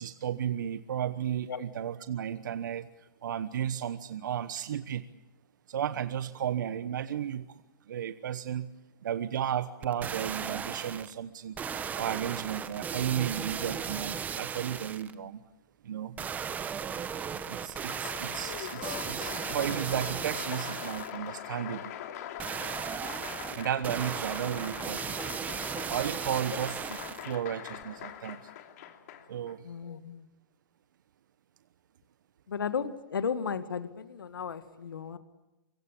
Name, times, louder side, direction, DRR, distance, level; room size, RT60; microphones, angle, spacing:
voice 1, 0.0-2.9 3.2-5.0 5.7-7.5 7.9-8.7 9.0-11.6 11.9-15.4 15.8-16.1 17.5-21.9 23.5-25.1 25.9-28.5 29.3-29.6, right 9 dB, 65° right, 12 dB, 1.1 m, -34 dB
sound 1, 9.8-11.1 11.6-15.1 16.2-21.2 22.4-27.4 27.8-27.9, right 7 dB, 15° right, 1.1 m, -36 dB
Applause, 17.6-29.5, left 10 dB, 50° left, 2.9 m, -42 dB
voice 2, 29.6-30.3 32.5-35.2, left 6 dB, 85° left, 11 dB, 1.9 m, -34 dB
25.5 x 23.0 x 8.5 m, 1.0 s
hypercardioid pair, 140°, 11 cm